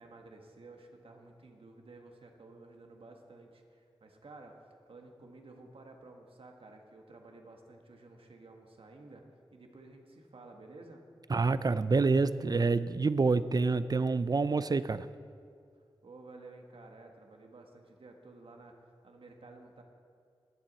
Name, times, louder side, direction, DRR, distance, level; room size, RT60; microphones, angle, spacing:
voice 1, 0.0-4.6 4.9-9.2 9.5-11.0 15.7-18.8 19.0-19.8, right 2 dB, 70° right, 3 dB, 1.5 m, -53 dB
voice 2, 11.3-15.1, right 4 dB, 40° right, 14 dB, 0.5 m, -27 dB
20.0 x 7.7 x 4.1 m, 2.3 s
cardioid pair, 50°, 10 cm